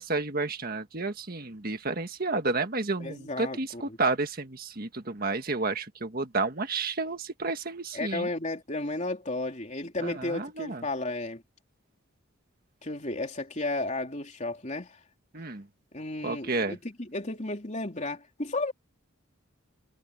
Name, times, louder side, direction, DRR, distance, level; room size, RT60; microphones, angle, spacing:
voice 1, 0.0-8.3 10.0-10.8 15.3-15.7 16.2-16.8, right 3 dB, 45° right, 1.7 m, -31 dB
voice 2, 3.0-4.0 7.9-11.4 12.8-15.0 15.9-18.7, left 2 dB, 35° left, 3.4 m, -33 dB
head